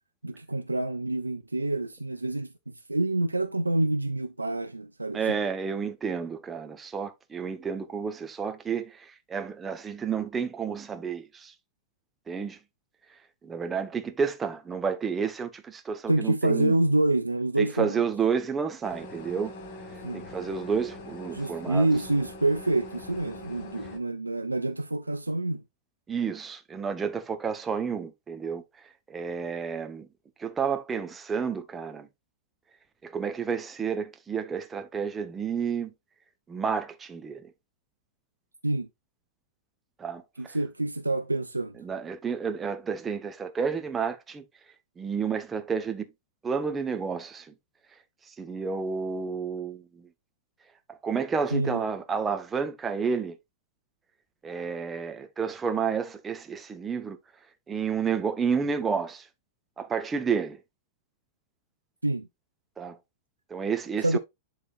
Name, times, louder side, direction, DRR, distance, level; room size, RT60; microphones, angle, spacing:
voice 1, 0.2-5.2 16.1-18.0 20.0-20.3 21.3-25.6 38.6-38.9 40.4-41.8 51.5-51.8 62.0-62.3 64.0-64.2, right 2 dB, 90° right, 0.4 m, -27 dB
voice 2, 5.1-11.5 12.3-12.6 13.4-16.8 17.6-19.5 20.1-21.9 26.1-28.6 29.1-30.1 30.4-32.1 33.0-35.9 36.5-37.5 40.0-40.6 41.8-44.4 45.0-46.1 46.4-47.5 48.4-50.1 50.9-53.4 54.4-57.2 57.7-59.3 59.8-60.6 62.8-63.0 63.5-64.2, right 6 dB, 20° right, 1.3 m, -30 dB
sound 1, 18.8-24.0, left 2 dB, 50° left, 2.3 m, -42 dB
11.0 x 3.9 x 2.5 m
figure-of-eight pair, 95°, 0 cm